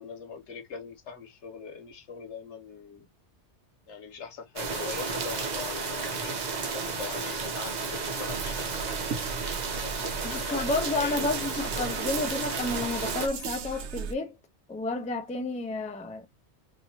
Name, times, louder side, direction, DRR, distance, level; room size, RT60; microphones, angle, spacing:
voice 1, 0.0-3.1 3.9-6.4 6.6-8.9 9.7-11.9, left 5 dB, 85° left, 1.3 m, -41 dB
sound 1, 4.6-13.3, right 4 dB, 45° right, 0.7 m, -32 dB
sound 2, 8.2-14.1, right 6 dB, 80° right, 0.9 m, -38 dB
voice 2, 10.2-14.4 14.7-16.3, left 3 dB, 10° left, 0.3 m, -31 dB
2.8 x 2.6 x 2.7 m
omnidirectional pair, 1.1 m